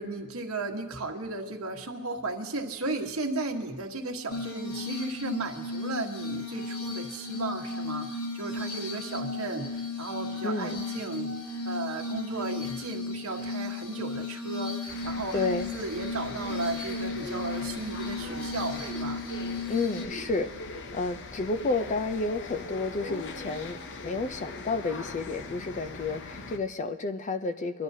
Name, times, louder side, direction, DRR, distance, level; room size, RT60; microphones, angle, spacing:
voice 1, 0.0-11.3 11.6-14.8 15.0-19.2, right 3 dB, 75° right, 2 dB, 1.2 m, -35 dB
Glass, 4.3-20.1, left 3 dB, 75° left, 1.2 m, -35 dB
voice 2, 10.4-10.8 15.3-15.7 19.7-27.8, left 3 dB, 35° left, 10 dB, 0.5 m, -31 dB
sound 1, 14.9-26.6, left 3 dB, 55° left, 0.8 m, -41 dB
25.0 x 11.5 x 2.7 m, 1.2 s
head